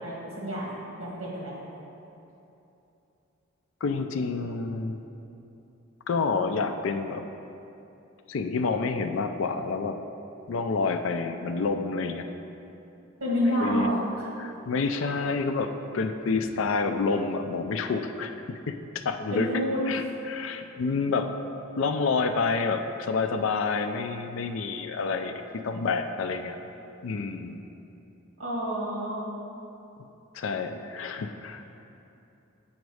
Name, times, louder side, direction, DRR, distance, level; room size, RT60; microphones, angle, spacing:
voice 1, 0.0-1.6 13.2-14.3 19.3-19.8 28.4-29.2, equal, 70° right, -5 dB, 1.8 m, -29 dB
voice 2, 3.8-5.0 6.1-7.2 8.3-10.0 10.5-12.3 13.6-13.9 14.4-18.7 19.0-19.5 19.9-21.3 21.8-25.3 25.6-26.6 27.0-27.6 30.3-31.8, left 4 dB, 70° left, 6 dB, 0.4 m, -28 dB
7.9 x 5.2 x 4.8 m, 2.9 s
head